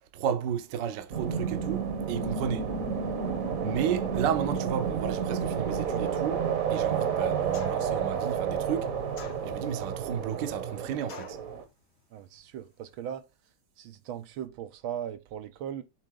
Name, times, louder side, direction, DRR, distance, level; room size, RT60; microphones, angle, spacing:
voice 1, 0.1-2.7 3.6-8.9 9.4-11.4, right 9 dB, 65° right, 1.3 m, -33 dB
sound 1, 1.1-11.6, right 7 dB, 50° right, 1.2 m, -30 dB
sound 2, 7.5-8.0 9.2-9.8 11.1-11.5, left 6 dB, 70° left, 0.6 m, -45 dB
voice 2, 12.1-13.2 13.8-15.8, right 10 dB, 85° right, 1.5 m, -38 dB
7.7 x 3.8 x 3.7 m
omnidirectional pair, 2.2 m